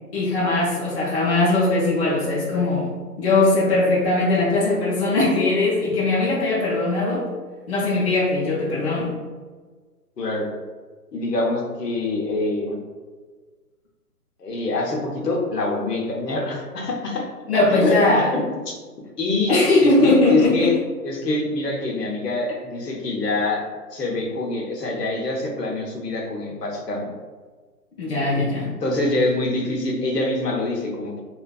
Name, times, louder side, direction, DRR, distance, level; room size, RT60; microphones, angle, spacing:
voice 1, 0.1-2.9 3.2-7.3 7.7-9.1 17.5-18.3 19.5-20.7 28.0-28.7, left 2 dB, 45° left, -7 dB, 0.6 m, -20 dB
voice 2, 10.2-10.5 11.1-12.8 14.4-17.3 17.7-18.0 18.3-18.8 19.2-20.8 21.0-23.6 23.9-27.1 28.8-31.2, left 2 dB, 85° left, -1 dB, 0.8 m, -25 dB
2.5 x 2.2 x 2.2 m, 1.4 s
figure-of-eight pair, 140°, 47 cm